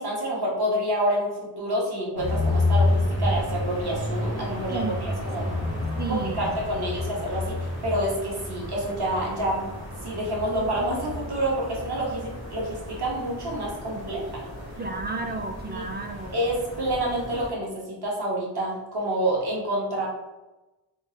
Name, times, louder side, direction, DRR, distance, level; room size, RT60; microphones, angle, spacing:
voice 1, 0.0-5.5 6.1-9.7 10.0-14.5 15.7-15.8 16.3-20.1, right 1 dB, 55° right, -4 dB, 1.1 m, -28 dB
sound 1, 2.2-17.5, left 2 dB, 90° right, 1.1 m, -30 dB
voice 2, 4.7-5.2 6.0-6.9 14.8-16.4, right 3 dB, 25° right, 4 dB, 0.3 m, -33 dB
3.4 x 2.0 x 2.7 m, 1.0 s
cardioid pair, 40°, 46 cm